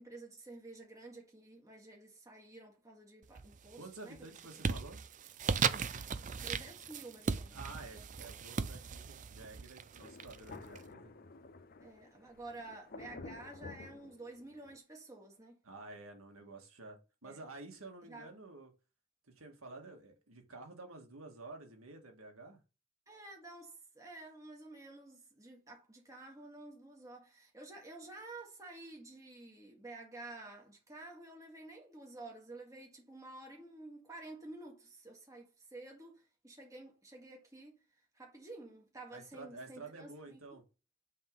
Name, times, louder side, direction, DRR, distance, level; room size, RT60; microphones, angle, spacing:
voice 1, 0.0-4.2 6.4-7.6 7.9-8.3 11.8-15.6 17.2-17.4 18.0-18.3 23.1-37.8 38.1-40.6, right 2 dB, 15° right, 1.9 m, -51 dB
sound 1, 3.3-3.8 4.2-10.8, right 5 dB, 35° right, 0.4 m, -37 dB
voice 2, 3.8-5.0 7.5-11.2 15.6-18.7 19.3-22.6 39.1-40.6, right 3 dB, 85° right, 1.9 m, -51 dB
Thunder, 10.0-14.8, left 3 dB, 45° left, 0.6 m, -51 dB
9.5 x 3.7 x 5.3 m
head